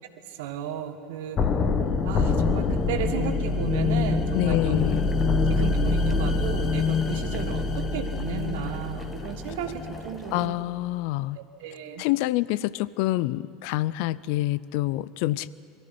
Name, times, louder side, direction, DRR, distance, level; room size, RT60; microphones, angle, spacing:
voice 1, 0.3-1.4 2.0-4.8 5.5-10.5 11.6-12.0, right 9 dB, 65° right, 7 dB, 1.6 m, -34 dB
sound 1, 1.4-10.2, left 4 dB, 35° left, 1.5 m, -25 dB
voice 2, 4.3-5.1 10.3-11.4 12.0-15.5, left 17 dB, 60° left, 19 dB, 0.5 m, -27 dB
Boiling, 4.8-10.5, left 1 dB, 20° left, 2.1 m, -44 dB
22.5 x 14.0 x 10.0 m, 2.4 s
figure-of-eight pair, 75°, 0 cm